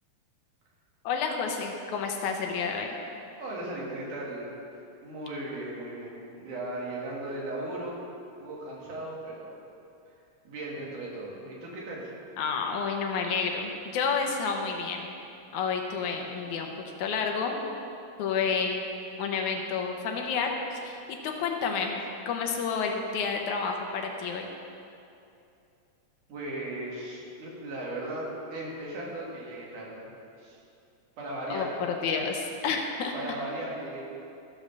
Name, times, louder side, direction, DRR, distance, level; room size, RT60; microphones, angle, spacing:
voice 1, 1.0-2.9 12.4-15.1 15.5-17.6 18.2-18.8 19.2-24.5 31.5-31.7 32.0-33.1, left 5 dB, 75° left, 2 dB, 2.1 m, -30 dB
voice 2, 3.4-8.0 8.4-9.5 10.5-12.1 26.3-30.1 30.4-30.6 31.2-31.7 33.1-34.1, right 1 dB, 80° right, -4 dB, 3.5 m, -37 dB
14.0 x 5.2 x 6.6 m, 2.7 s
omnidirectional pair, 3.6 m